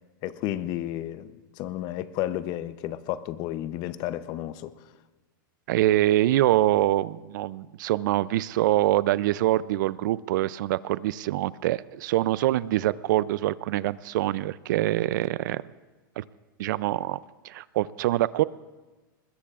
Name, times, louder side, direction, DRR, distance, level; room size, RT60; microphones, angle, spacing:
voice 1, 0.2-4.7, left 13 dB, 35° left, 0.7 m, -32 dB
voice 2, 5.7-15.6 16.2-16.3 16.6-18.4, right 15 dB, 60° right, 0.4 m, -25 dB
21.5 x 21.0 x 2.4 m
supercardioid pair, 150°, 11 cm